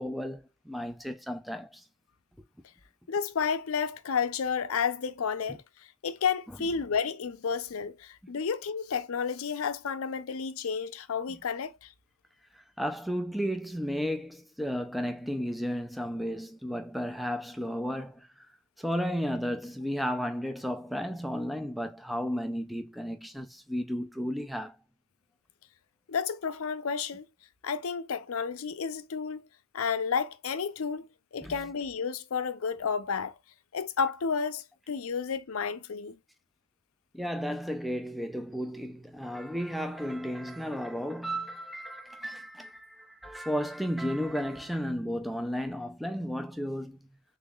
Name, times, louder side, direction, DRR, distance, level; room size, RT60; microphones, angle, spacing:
voice 1, 0.0-1.8 5.5-5.6 12.5-18.5 18.8-24.8 31.4-31.5 37.1-47.0, equal, ahead, 0.4 m, -33 dB
voice 2, 3.1-5.6 6.0-11.9 26.1-27.3 27.6-29.4 29.7-33.3 33.7-36.2, left 6 dB, 80° left, 0.5 m, -31 dB
3.6 x 3.5 x 2.3 m
head